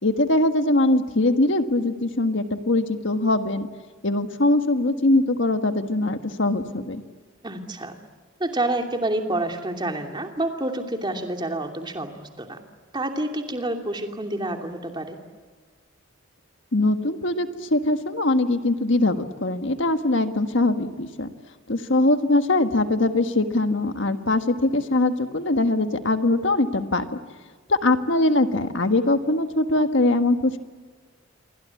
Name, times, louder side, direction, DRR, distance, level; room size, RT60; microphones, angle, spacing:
voice 1, 0.0-3.7 4.0-7.0 16.7-21.3 21.7-27.2 27.7-30.6, left 2 dB, 65° left, 8 dB, 1.6 m, -22 dB
voice 2, 7.4-7.9 8.4-12.6 12.9-15.2, right 1 dB, 20° right, 4 dB, 2.8 m, -28 dB
28.5 x 24.0 x 8.4 m, 1.4 s
head